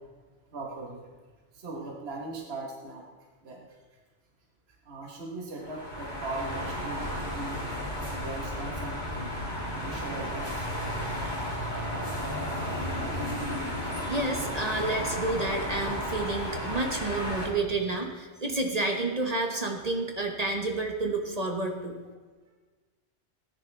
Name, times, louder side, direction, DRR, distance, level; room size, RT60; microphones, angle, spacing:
voice 1, 0.5-1.1 1.5-3.1 3.4-3.8 4.8-9.3 9.7-11.4 11.7-11.9 17.4-17.5 22.5-22.6, right 2 dB, 55° right, 0 dB, 1.6 m, -40 dB
sound 1, 5.6-17.5, equal, 40° left, 2.9 m, -33 dB
voice 2, 14.0-22.0, right 2 dB, 35° right, 2 dB, 1.2 m, -30 dB
17.5 x 10.0 x 3.4 m, 1.4 s
omnidirectional pair, 1.3 m